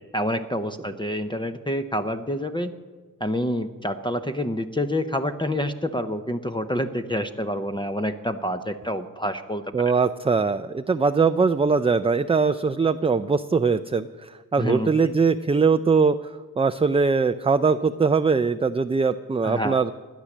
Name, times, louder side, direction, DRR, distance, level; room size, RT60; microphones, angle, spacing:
voice 1, 0.0-2.7 3.2-9.9 14.6-14.9 19.4-19.8, equal, 15° left, 7 dB, 0.7 m, -27 dB
voice 2, 9.7-16.2 16.6-19.9, right 4 dB, 15° right, 10 dB, 0.4 m, -21 dB
16.5 x 10.5 x 7.3 m, 1.4 s
cardioid pair, 70°, 36 cm